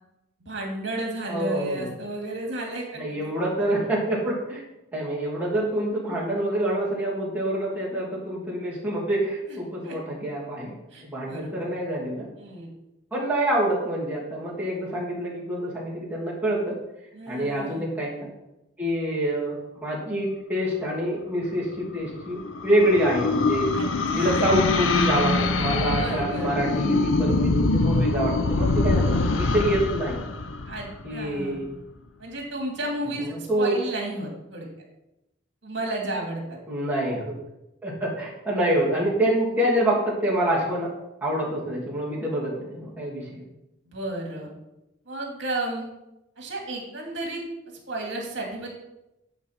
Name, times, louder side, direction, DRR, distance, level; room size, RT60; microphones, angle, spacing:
voice 1, 0.4-3.3 9.5-9.6 9.8-10.0 10.9-11.7 12.4-12.7 17.1-17.9 23.7-24.6 26.0-26.8 30.7-31.6 32.2-34.7 35.6-36.6 43.9-44.5 45.1-45.9 46.4-47.4 47.9-48.7, right 1 dB, 60° right, 0 dB, 2.3 m, -33 dB
voice 2, 1.3-1.9 2.9-4.6 4.9-10.8 11.0-12.3 13.1-16.8 17.3-18.3 18.8-19.6 19.8-23.7 24.1-30.2 31.0-31.7 33.2-33.8 36.7-37.3 37.8-40.9 41.2-43.4, right 1 dB, 10° right, -7 dB, 2.7 m, -26 dB
sound 1, 21.8-31.4, left 3 dB, 80° left, 0.7 m, -24 dB
10.5 x 4.0 x 5.7 m, 0.92 s
head